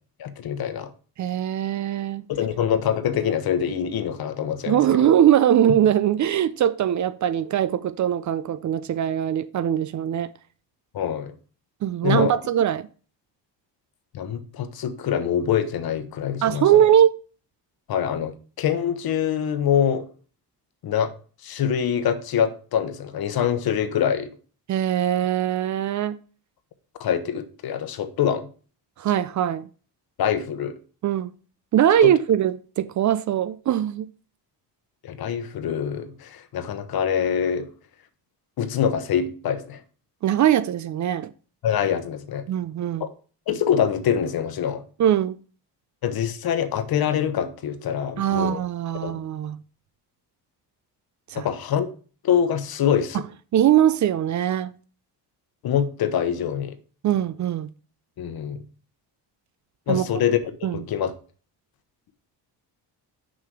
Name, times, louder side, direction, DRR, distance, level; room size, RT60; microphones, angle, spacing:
voice 1, 0.2-0.9 2.3-5.1 10.9-11.3 12.0-12.3 14.1-16.7 17.9-20.1 20.8-21.1 21.4-24.3 27.0-28.5 30.2-30.8 32.0-32.1 35.0-37.7 38.6-39.8 41.6-42.4 43.0-43.1 43.5-44.8 46.0-48.6 49.0-49.2 51.3-51.9 52.2-53.2 55.6-56.8 58.2-58.6 59.9-61.1, left 8 dB, 60° left, 1.0 m, -25 dB
voice 2, 1.2-2.3 4.7-10.3 11.8-12.9 16.4-17.2 24.7-26.2 29.0-29.7 31.0-31.3 31.7-34.1 40.2-41.3 42.5-43.1 45.0-45.4 48.2-49.6 51.3-51.5 53.5-54.7 57.0-57.7 59.9-60.0 60.6-60.8, right 10 dB, 45° right, 0.4 m, -21 dB
6.4 x 5.9 x 4.7 m
cardioid pair, 140°, 43 cm